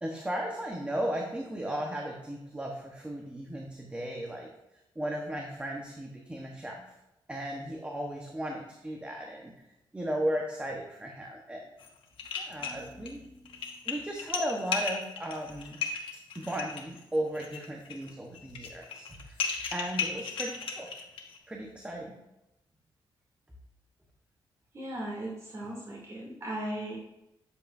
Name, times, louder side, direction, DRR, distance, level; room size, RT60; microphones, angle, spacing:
voice 1, 0.0-4.5 4.9-6.9 7.3-9.5 9.9-11.6 12.4-15.8 16.3-19.4 19.7-20.9 21.5-22.1, right 1 dB, 15° right, 0 dB, 1.1 m, -36 dB
sound 1, 11.8-11.9 12.2-13.1 13.4-21.4, left 6 dB, 85° left, 1.2 m, -35 dB
voice 2, 24.7-27.0, right 1 dB, 35° right, -5 dB, 2.7 m, -37 dB
9.8 x 7.4 x 2.6 m, 0.91 s
cardioid pair, 95°, 9 cm